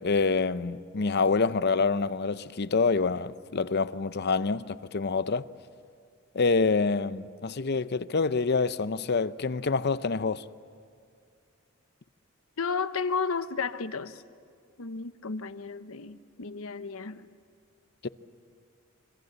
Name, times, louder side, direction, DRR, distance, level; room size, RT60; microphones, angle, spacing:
voice 1, 0.0-5.5 6.3-10.4 18.0-18.1, left 4 dB, 50° left, 0.6 m, -26 dB
voice 2, 12.6-14.2 14.8-17.3, left 5 dB, 75° left, 0.9 m, -33 dB
28.0 x 24.5 x 8.0 m
head